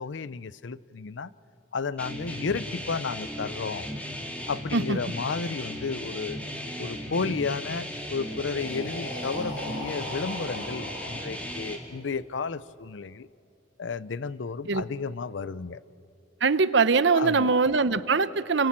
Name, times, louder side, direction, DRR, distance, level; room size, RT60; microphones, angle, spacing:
voice 1, 0.0-1.3 1.7-3.9 4.5-6.4 6.8-13.3 13.8-15.8 17.1-17.5, left 4 dB, 70° left, 18 dB, 0.6 m, -32 dB
sound 1, 2.0-11.8, equal, 5° left, 2.8 m, -36 dB
Breathing, 8.1-12.0, left 1 dB, 90° left, 5.0 m, -39 dB
voice 2, 16.4-18.7, right 4 dB, 70° right, 14 dB, 0.8 m, -22 dB
29.0 x 25.5 x 7.5 m, 2.7 s
head